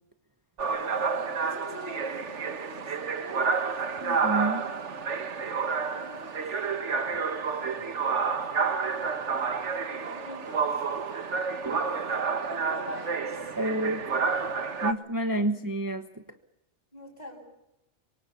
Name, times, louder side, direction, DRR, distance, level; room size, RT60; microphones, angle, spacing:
voice 1, 0.6-3.5 4.0-4.2 5.9-6.4 7.3-8.5 9.9-11.0 12.1-13.5 15.2-15.6 16.9-17.4, equal, 35° left, 3 dB, 8.0 m, -45 dB
sound 1, 0.6-14.9, right 5 dB, 80° right, 1.7 m, -29 dB
voice 2, 4.0-4.7 11.6-11.8 13.6-14.0 14.8-16.2, right 1 dB, 15° right, 6 dB, 1.3 m, -29 dB
27.0 x 24.5 x 7.1 m, 0.90 s
omnidirectional pair, 1.2 m